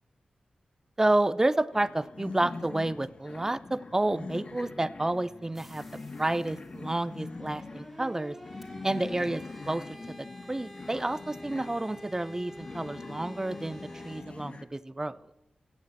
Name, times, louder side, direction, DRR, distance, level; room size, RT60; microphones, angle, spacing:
voice 1, 1.0-5.8 6.2-8.4 8.8-10.1 10.5-13.8 14.0-15.2, right 2 dB, 20° right, 16 dB, 0.7 m, -30 dB
sound 1, 1.7-14.6, left 3 dB, 50° left, 1.3 m, -43 dB
sound 2, 5.5-14.2, equal, ahead, 2.5 m, -49 dB
17.0 x 6.4 x 8.9 m, 0.92 s
cardioid pair, 65°, 2 cm